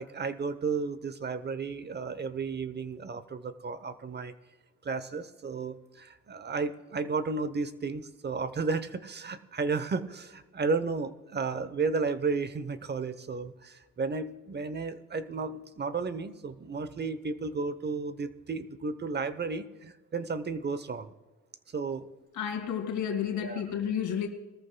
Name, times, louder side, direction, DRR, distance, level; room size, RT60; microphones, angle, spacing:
voice 1, 0.0-4.3 4.8-21.1 21.7-22.1 23.4-23.6, right 4 dB, 35° right, 0.9 m, -33 dB
voice 2, 22.3-24.3, left 8 dB, 70° left, 2.3 m, -31 dB
21.0 x 14.0 x 2.3 m
cardioid pair, 90°, 30 cm